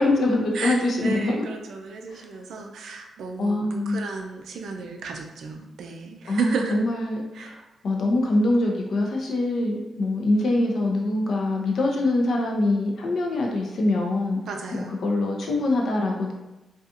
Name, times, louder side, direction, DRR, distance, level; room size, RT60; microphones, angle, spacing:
voice 1, 0.0-1.5 2.1-2.3 3.4-4.0 6.3-14.4 14.7-16.3, left 2 dB, 70° left, 0 dB, 0.5 m, -24 dB
voice 2, 0.5-6.8 7.3-7.6 14.5-15.0, right 4 dB, 80° right, 3 dB, 0.3 m, -33 dB
2.4 x 2.3 x 2.7 m, 1.0 s
supercardioid pair, 55°, 0 cm